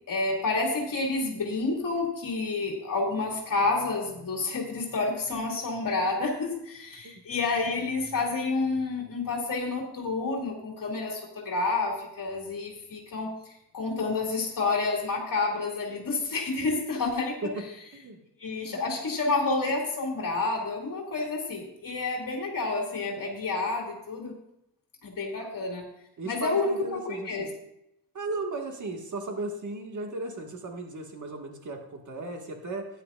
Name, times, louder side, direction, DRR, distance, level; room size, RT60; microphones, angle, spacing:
voice 1, 0.1-13.3 13.7-17.4 18.4-24.3 25.0-25.8 26.2-27.5, left 3 dB, 55° left, -1 dB, 2.5 m, -29 dB
voice 2, 26.2-27.5 28.1-32.9, right 2 dB, 45° right, 2 dB, 1.8 m, -36 dB
14.5 x 10.0 x 2.5 m, 0.81 s
wide cardioid pair, 125°, 40 cm